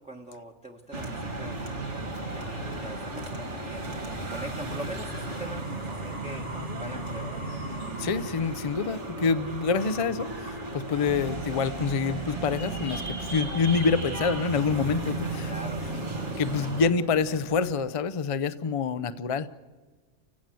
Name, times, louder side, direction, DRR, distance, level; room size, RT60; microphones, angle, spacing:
voice 1, 0.0-1.6 2.3-6.5 6.8-7.5 15.4-16.1, right 1 dB, 5° right, 1 dB, 1.1 m, -42 dB
sound 1, 0.9-16.9, right 2 dB, 70° right, 2.3 m, -35 dB
voice 2, 8.0-15.5 16.4-19.5, left 5 dB, 35° left, 14 dB, 0.6 m, -27 dB
sound 2, 11.1-18.0, right 5 dB, 30° right, 1.1 m, -38 dB
29.0 x 16.0 x 7.7 m, 1.3 s
omnidirectional pair, 1.2 m